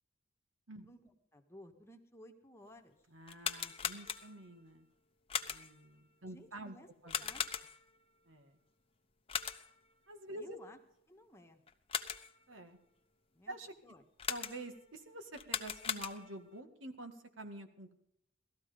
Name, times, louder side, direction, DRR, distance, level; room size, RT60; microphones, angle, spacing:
voice 1, 1.3-3.0 6.2-6.9 7.2-7.6 10.3-10.8 11.1-11.6 13.3-13.6 13.8-14.0, left 1 dB, 15° left, 3 dB, 1.6 m, -56 dB
voice 2, 3.1-4.9 5.4-6.8 7.0-7.2 8.3-8.6 10.1-10.6 12.5-12.8 13.5-13.7 14.3-17.9, right 1 dB, 80° right, 7 dB, 2.1 m, -48 dB
sound 1, 3.2-4.5 5.3-5.9 7.1-8.0 9.3-9.9 11.7-12.4 14.2-14.8 15.3-16.5, left 7 dB, 30° left, 1.0 m, -39 dB
18.0 x 14.0 x 5.2 m, 0.76 s
head